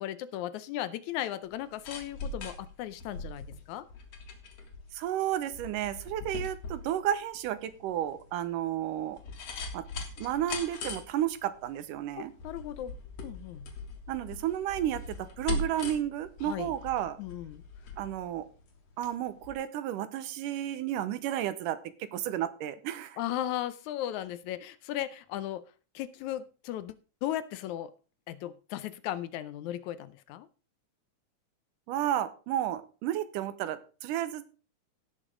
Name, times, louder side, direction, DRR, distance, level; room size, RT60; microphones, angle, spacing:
voice 1, 0.0-3.9 12.2-12.9 13.2-13.7 16.4-16.7 17.2-17.6 23.2-25.6 26.0-27.0 27.2-27.9 28.3-30.5, left 12 dB, 75° left, 14 dB, 1.9 m, -36 dB
sound 1, 1.5-19.1 19.4-19.5, left 3 dB, 55° left, 2.8 m, -41 dB
voice 2, 4.9-9.2 9.7-9.8 10.2-12.3 14.1-17.2 18.0-18.5 19.0-23.2 31.9-34.5, right 11 dB, 90° right, 13 dB, 2.4 m, -32 dB
17.0 x 6.5 x 3.7 m, 0.35 s
omnidirectional pair, 3.7 m